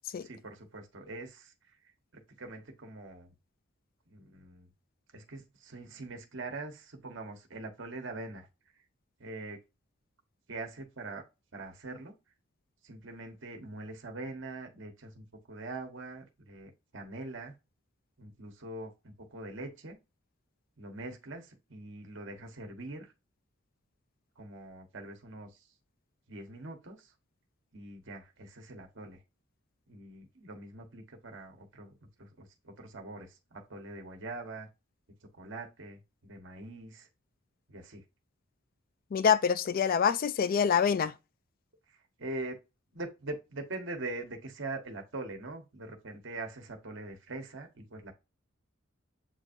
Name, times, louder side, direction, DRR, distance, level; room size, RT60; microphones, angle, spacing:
voice 1, 0.2-1.8 2.1-3.3 4.1-4.7 5.1-8.5 9.2-9.6 10.5-11.2 11.5-12.1 12.8-17.5 18.2-20.0 20.8-23.1 24.4-25.7 26.3-27.1 27.7-29.2 29.9-34.7 35.3-37.1 37.7-38.0 41.9-42.6 42.9-48.1, right 2 dB, 60° right, 1.2 m, -43 dB
voice 2, 39.1-41.2, left 7 dB, 45° left, 0.3 m, -26 dB
8.0 x 2.7 x 2.5 m
head